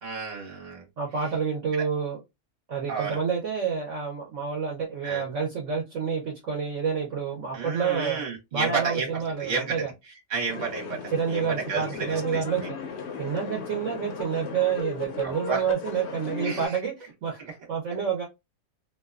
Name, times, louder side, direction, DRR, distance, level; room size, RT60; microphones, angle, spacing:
voice 1, 0.0-0.8 2.9-3.2 5.0-5.2 7.5-9.1 9.4-9.9 10.3-11.0 11.3-12.4 15.2-15.6 16.4-16.7, right 5 dB, 35° right, 1.0 m, -31 dB
voice 2, 1.0-2.2 2.7-8.2 8.5-9.9 11.1-12.6 13.2-18.2, right 6 dB, 60° right, 0.9 m, -28 dB
sound 1, 10.5-16.7, left 5 dB, 65° left, 0.7 m, -36 dB
2.6 x 2.2 x 2.3 m
omnidirectional pair, 1.6 m